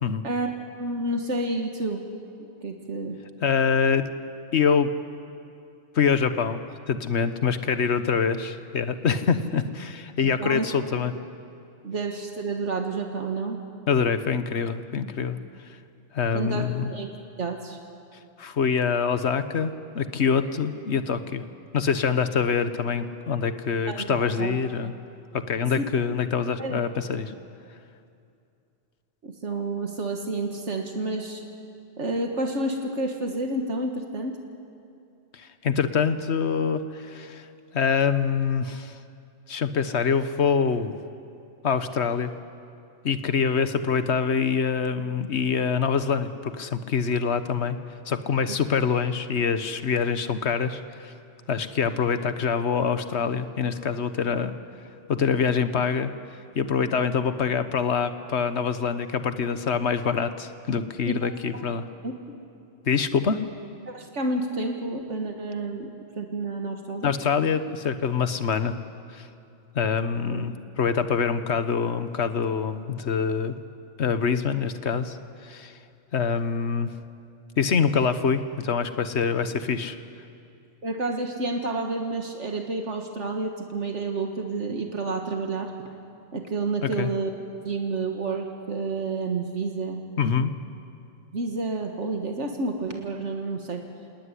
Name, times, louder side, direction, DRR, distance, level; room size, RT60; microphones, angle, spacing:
voice 1, 0.2-2.0 2.6-3.2 10.2-10.7 11.8-13.6 16.3-17.1 17.4-17.8 23.9-24.6 25.8-25.9 26.6-26.8 29.2-31.4 32.0-34.4 61.1-61.2 61.5-61.6 62.0-62.4 63.9-65.9 66.2-67.1 70.2-70.4 80.8-85.7 86.3-87.3 87.6-90.0 91.3-93.8, right 3 dB, 75° right, 3 dB, 1.9 m, -30 dB
voice 2, 3.4-4.1 4.5-4.9 5.9-6.6 6.9-11.1 13.9-15.4 16.1-16.9 18.4-21.4 21.7-24.9 25.3-27.3 35.3-37.5 37.7-39.0 39.5-40.9 41.6-42.3 43.0-47.8 48.1-51.1 51.5-54.5 55.1-56.1 56.6-61.9 62.9-63.4 67.0-68.8 69.1-69.3 69.7-73.5 74.0-75.2 75.4-75.7 76.1-76.9 77.6-80.0 86.8-87.1 90.2-90.5, left 6 dB, 65° left, 11 dB, 1.4 m, -25 dB
28.0 x 18.5 x 9.9 m, 2.6 s
omnidirectional pair, 1.2 m